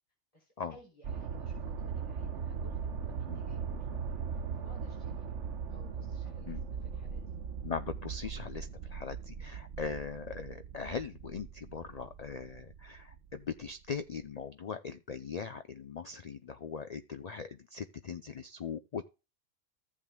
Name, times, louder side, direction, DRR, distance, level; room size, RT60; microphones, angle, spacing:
voice 1, 0.3-3.9 4.3-5.3 5.7-7.2, equal, 25° left, -3 dB, 3.5 m, -59 dB
sound 1, 1.0-13.7 14.3-14.4, right 6 dB, 65° right, 1.1 m, -39 dB
voice 2, 7.6-19.0, left 6 dB, 60° left, 10 dB, 0.4 m, -40 dB
14.5 x 7.5 x 2.2 m, 0.29 s
omnidirectional pair, 1.4 m